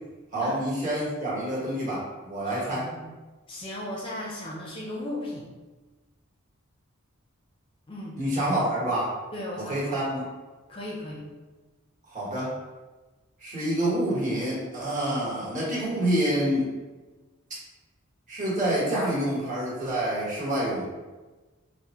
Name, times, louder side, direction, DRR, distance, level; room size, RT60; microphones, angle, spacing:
voice 1, 0.3-2.8 8.2-9.1 9.6-10.2 12.1-12.5 13.4-16.7 18.3-20.9, right 1 dB, 35° right, -7 dB, 1.2 m, -27 dB
voice 2, 2.4-3.1 3.5-5.5 7.9-8.2 9.3-9.9 10.7-11.3, left 1 dB, 25° left, -3 dB, 0.4 m, -36 dB
4.8 x 2.0 x 2.9 m, 1.2 s
head